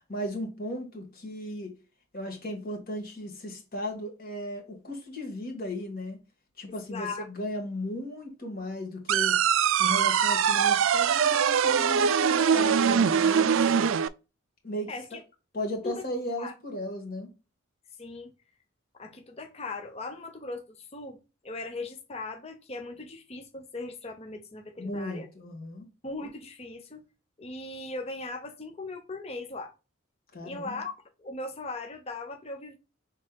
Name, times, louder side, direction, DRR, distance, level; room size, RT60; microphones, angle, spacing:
voice 1, 0.1-1.7 2.1-6.2 6.6-9.3 9.8-13.8 14.6-15.2 15.5-17.3 24.8-25.9 30.3-30.8, left 1 dB, 45° left, 1.5 m, -36 dB
voice 2, 6.9-7.2 14.9-15.1 15.8-16.0 16.4-16.5 18.0-18.3 19.0-21.2 21.4-25.3 26.0-27.0 27.4-29.7 30.4-30.9 31.2-32.8, left 3 dB, 30° left, 0.7 m, -38 dB
sound 1, 9.1-14.1, right 7 dB, 70° right, 0.4 m, -23 dB
6.4 x 3.6 x 2.2 m
head